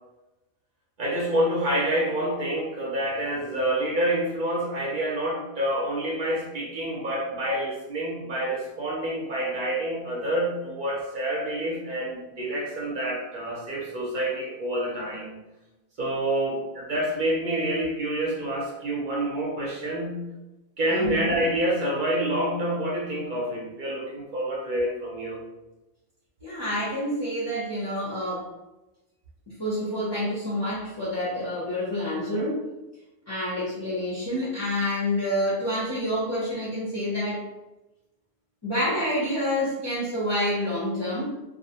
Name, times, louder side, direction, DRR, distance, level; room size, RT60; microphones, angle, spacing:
voice 1, 1.0-15.4 16.0-20.2 20.8-25.4, right 1 dB, 55° right, -3 dB, 0.6 m, -27 dB
voice 2, 20.9-21.4 26.4-28.5 29.6-32.6 33.3-37.5 38.6-41.2, left 1 dB, 30° left, -9 dB, 0.5 m, -28 dB
2.4 x 2.0 x 2.7 m, 1.0 s
omnidirectional pair, 1.2 m